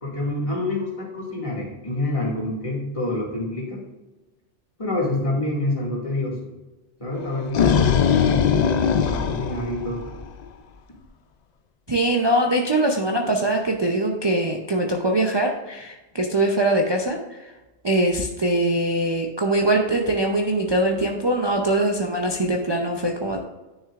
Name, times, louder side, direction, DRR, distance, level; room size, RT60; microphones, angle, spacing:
voice 1, 0.0-3.8 4.8-6.4 7.0-10.1, left 1 dB, 30° left, -4 dB, 2.2 m, -27 dB
sound 1, 7.2-10.4, left 7 dB, 60° left, 0.4 m, -20 dB
voice 2, 11.9-17.5 17.8-23.4, right 1 dB, 30° right, 0 dB, 0.6 m, -22 dB
9.9 x 6.4 x 2.5 m, 1.1 s
omnidirectional pair, 1.2 m